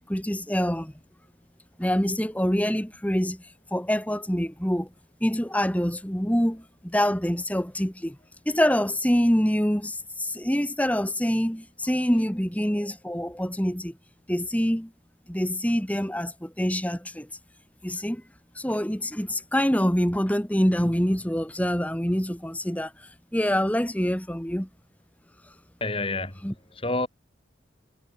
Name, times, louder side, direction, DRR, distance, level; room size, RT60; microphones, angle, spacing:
voice 1, 0.1-0.9 1.8-3.4 3.7-4.9 5.2-8.2 8.5-13.9 14.3-14.9 15.3-17.3 17.8-18.2 18.6-22.9 23.3-24.7 26.4-26.5, equal, 10° left, 2.4 m, -25 dB
voice 2, 25.8-27.1, left 2 dB, 30° left, 6.9 m, -29 dB
head